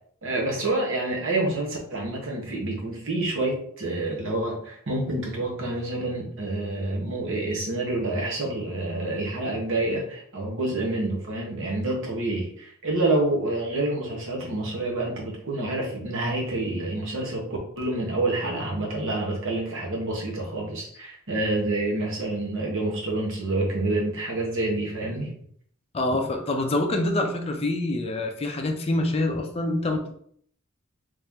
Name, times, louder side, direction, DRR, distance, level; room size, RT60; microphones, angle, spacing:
voice 1, 0.2-17.5 17.8-25.3, right 2 dB, 65° right, -1 dB, 1.2 m, -28 dB
voice 2, 25.9-30.1, left 2 dB, 30° left, 4 dB, 0.5 m, -26 dB
3.2 x 2.8 x 3.6 m, 0.63 s
head